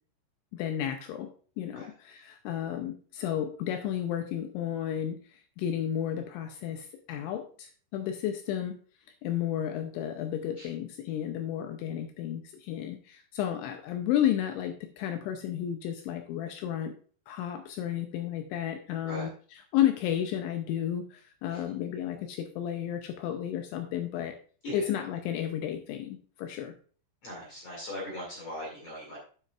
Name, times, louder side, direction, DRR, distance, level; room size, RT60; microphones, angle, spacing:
voice 1, 0.5-8.8 9.2-16.9 17.3-24.3 24.7-26.8, left 10 dB, 85° left, 6 dB, 2.7 m, -32 dB
voice 2, 27.2-29.2, left 1 dB, 45° left, -2 dB, 2.3 m, -39 dB
9.1 x 8.0 x 2.4 m, 0.42 s
omnidirectional pair, 5.9 m